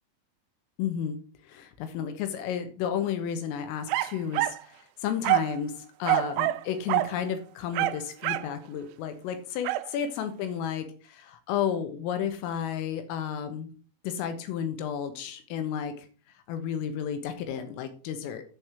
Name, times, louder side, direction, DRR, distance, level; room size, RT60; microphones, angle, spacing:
voice 1, 0.8-1.2 1.5-5.7 6.0-13.7 14.0-16.1 16.5-18.4, left 8 dB, 85° left, 8 dB, 4.0 m, -32 dB
sound 1, 3.9-4.6 5.2-5.6 6.1-6.6 6.9-7.1 7.7-8.5 9.7-9.9, right 17 dB, 90° right, 3.2 m, -26 dB
10.5 x 5.0 x 6.1 m, 0.39 s
omnidirectional pair, 5.7 m